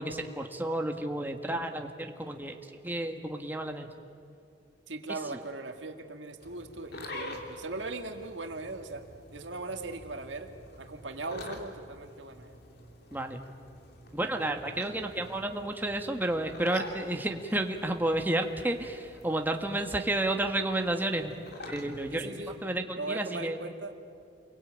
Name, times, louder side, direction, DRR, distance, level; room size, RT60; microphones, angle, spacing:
voice 1, 0.0-2.6 2.8-3.9 13.1-13.4 14.1-21.3 21.7-22.3 22.6-23.6, right 1 dB, 10° right, 4 dB, 1.5 m, -31 dB
voice 2, 4.9-9.0 9.3-10.5 10.8-12.6 22.1-22.6 23.0-23.9, right 2 dB, 85° right, 5 dB, 2.1 m, -39 dB
sound 1, 6.4-22.6, left 1 dB, 60° left, 3.1 m, -47 dB
29.0 x 22.5 x 9.0 m, 2.4 s
head